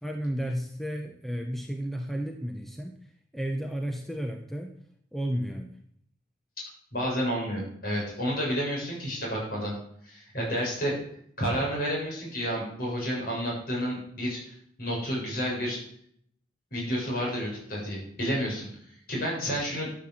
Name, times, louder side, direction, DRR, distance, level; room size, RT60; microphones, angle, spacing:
voice 1, 0.0-3.0 3.3-4.8 5.1-5.8 10.4-10.6, equal, ahead, 3 dB, 1.0 m, -33 dB
voice 2, 6.6-9.7 10.0-10.9 11.4-15.8 16.7-18.7 19.1-19.9, equal, 50° left, -3 dB, 7.6 m, -30 dB
12.5 x 8.0 x 7.5 m, 0.67 s
head